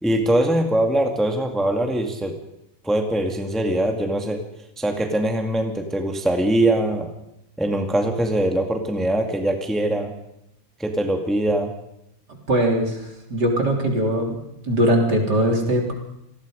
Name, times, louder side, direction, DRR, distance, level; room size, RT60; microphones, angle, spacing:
voice 1, 0.0-2.4 2.8-4.4 4.8-7.1 7.6-10.1 10.8-11.7, right 1 dB, ahead, 3 dB, 2.0 m, -22 dB
voice 2, 12.5-14.4 14.7-15.9, right 1 dB, 55° right, 1 dB, 4.3 m, -21 dB
28.0 x 20.0 x 5.2 m, 0.82 s
omnidirectional pair, 2.2 m